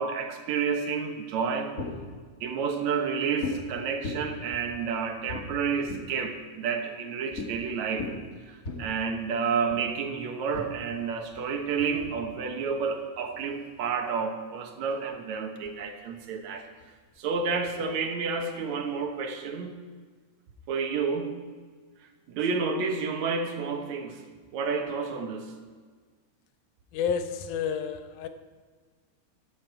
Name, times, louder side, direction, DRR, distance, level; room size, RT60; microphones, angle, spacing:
voice 1, 0.0-1.7 2.4-8.1 8.5-16.7 17.2-19.8 20.7-21.3 22.3-24.2 24.5-25.5, right 5 dB, 70° right, 4 dB, 2.4 m, -30 dB
sound 1, 1.3-2.2 3.4-3.7 4.0-6.2 7.3-7.5 7.8-8.8 9.7-9.8 10.5-13.9 14.6-15.2 15.6-15.7 16.0-17.8 18.4-19.2, left 3 dB, 30° left, 2.0 m, -39 dB
voice 2, 26.9-28.3, left 7 dB, 85° left, 9 dB, 2.4 m, -30 dB
14.5 x 11.5 x 4.7 m, 1.5 s
omnidirectional pair, 3.5 m